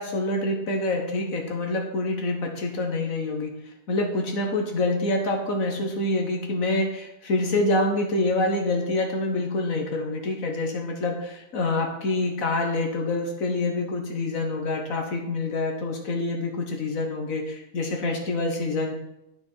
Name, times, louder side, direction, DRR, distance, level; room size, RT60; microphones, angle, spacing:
voice 1, 0.0-3.5 3.9-18.9, left 2 dB, 65° left, 2 dB, 0.8 m, -26 dB
9.8 x 8.7 x 4.5 m, 0.84 s
omnidirectional pair, 3.3 m